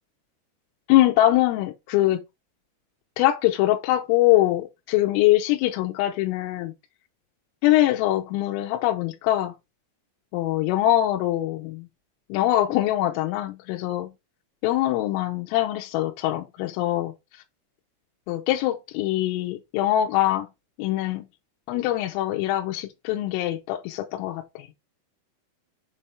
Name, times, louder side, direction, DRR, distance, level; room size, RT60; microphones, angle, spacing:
voice 1, 0.9-2.2 3.2-6.7 7.6-9.5 10.3-11.9 12.3-14.1 14.6-17.1 18.3-20.5 20.8-21.2 21.7-24.7, left 14 dB, 90° left, 3.3 m, -23 dB
7.7 x 4.2 x 3.4 m
omnidirectional pair, 6.0 m